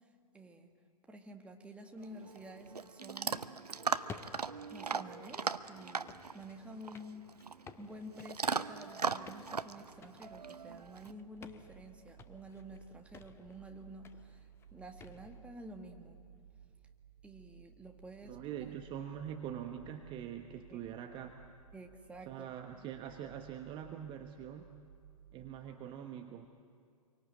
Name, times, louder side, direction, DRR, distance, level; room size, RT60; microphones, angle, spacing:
voice 1, 0.3-0.7 1.1-3.5 4.7-7.3 7.8-16.2 17.2-18.7 20.7-20.8 21.7-22.5, right 1 dB, 5° right, 3 dB, 1.7 m, -50 dB
Chewing mastication / Dog, 2.0-11.1, right 5 dB, 80° right, 0.8 m, -39 dB
sound 1, 3.8-15.4, left 6 dB, 15° left, 0.7 m, -56 dB
sound 2, 9.7-25.8, right 8 dB, 60° right, 4.0 m, -58 dB
voice 2, 18.2-21.3 22.3-24.7 25.3-26.5, right 9 dB, 25° right, 5 dB, 1.1 m, -44 dB
27.0 x 24.0 x 9.2 m, 2.2 s
figure-of-eight pair, 110°, 20 cm